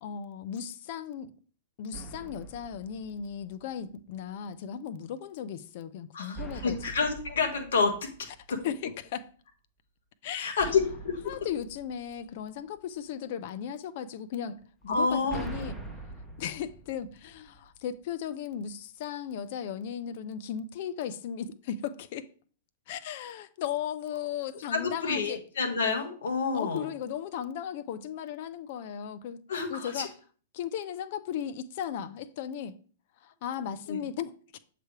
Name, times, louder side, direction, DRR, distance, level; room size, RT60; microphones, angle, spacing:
voice 1, 0.0-1.3 1.8-6.8 8.6-9.3 10.2-10.8 11.3-14.6 14.8-15.7 16.4-22.3 22.9-25.4 26.5-29.4 29.7-30.1 30.5-32.7 33.2-34.6, left 8 dB, 55° left, 0.6 m, -36 dB
sound 1, 1.9-3.8 6.3-8.8 10.6-12.9 14.8-17.9, right 3 dB, ahead, 1.0 m, -44 dB
voice 2, 6.1-7.9 8.2-8.6 10.4-11.2 14.9-15.4 24.7-26.9 29.5-30.1 33.9-34.0, left 4 dB, 75° left, 1.5 m, -28 dB
7.6 x 3.4 x 4.7 m
hypercardioid pair, 115°, 0 cm